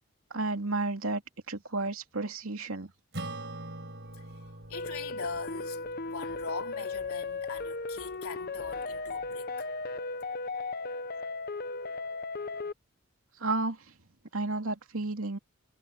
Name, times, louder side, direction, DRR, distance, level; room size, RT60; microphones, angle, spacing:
voice 1, 0.3-1.2 1.5-2.9 13.4-13.8 14.3-15.4, right 3 dB, 85° right, 2.6 m, -32 dB
Acoustic guitar / Strum, 3.1-7.9, right 2 dB, 55° right, 5.0 m, -44 dB
voice 2, 4.1-9.9, left 4 dB, 90° left, 3.5 m, -42 dB
sound 1, 4.7-12.7, left 3 dB, 45° left, 0.7 m, -36 dB
head